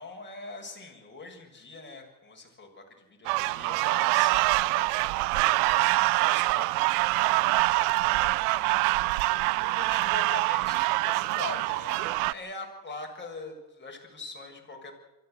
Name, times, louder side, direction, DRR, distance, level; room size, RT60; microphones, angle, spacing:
voice 1, 0.0-14.9, left 3 dB, 25° left, 1 dB, 7.1 m, -43 dB
sound 1, 3.3-12.3, right 21 dB, 85° right, 0.7 m, -25 dB
24.0 x 15.5 x 8.2 m, 1.0 s
hypercardioid pair, 65°, 44 cm